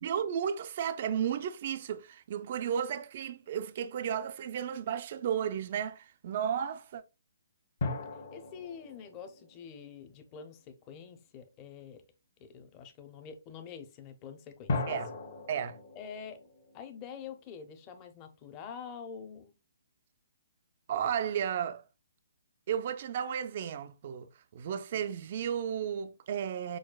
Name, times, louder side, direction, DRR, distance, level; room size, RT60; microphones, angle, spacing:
voice 1, 0.0-7.0 14.9-15.2 15.5-15.8 20.9-21.8 22.7-26.8, right 8 dB, 45° right, 0.4 m, -33 dB
sound 1, 3.4-4.1 7.8-10.6 14.7-17.9, left 3 dB, 55° left, 1.2 m, -39 dB
voice 2, 8.3-12.0 12.4-15.0 15.9-16.4 16.7-19.5, left 7 dB, 25° left, 0.7 m, -46 dB
6.2 x 2.2 x 2.3 m
hypercardioid pair, 155°, 0 cm